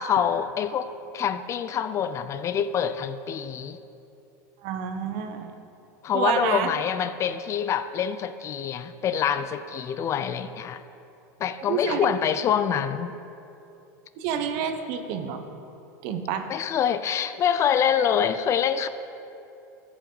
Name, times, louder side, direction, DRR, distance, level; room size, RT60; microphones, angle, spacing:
voice 1, 0.0-3.8 6.0-10.8 11.4-13.1 16.5-18.9, left 8 dB, 30° left, 13 dB, 0.4 m, -26 dB
voice 2, 4.6-5.5 6.1-6.7 11.7-12.1 14.2-15.4 16.0-16.5, right 7 dB, 55° right, 7 dB, 1.1 m, -28 dB
14.0 x 8.0 x 4.0 m, 2.8 s
supercardioid pair, 120°, 9 cm